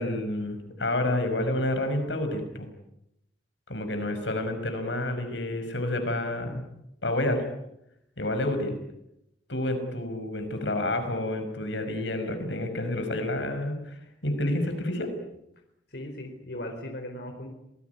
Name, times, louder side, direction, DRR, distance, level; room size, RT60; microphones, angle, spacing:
voice 1, 0.0-2.7 3.7-6.6 7.0-7.4 8.2-8.8 9.5-15.1, left 1 dB, 85° left, 7 dB, 5.7 m, -29 dB
voice 2, 15.9-17.5, left 1 dB, 65° left, 3 dB, 4.6 m, -38 dB
27.5 x 19.5 x 9.5 m, 0.83 s
head